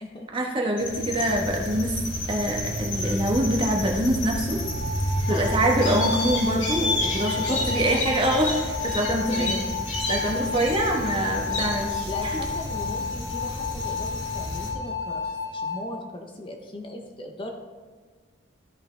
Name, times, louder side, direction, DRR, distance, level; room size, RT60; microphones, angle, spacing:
voice 1, 0.3-1.9 2.3-4.6 5.3-9.6 10.1-12.4, right 1 dB, 25° right, 0 dB, 1.2 m, -25 dB
sound 1, 0.8-14.7, left 1 dB, 75° left, 2.3 m, -30 dB
sound 2, 4.6-15.8, left 5 dB, 70° right, 1.6 m, -32 dB
voice 2, 7.3-7.7 9.3-9.8 11.0-11.4 12.0-17.5, left 1 dB, 25° left, 2 dB, 0.6 m, -38 dB
13.5 x 5.6 x 3.3 m, 1.5 s
head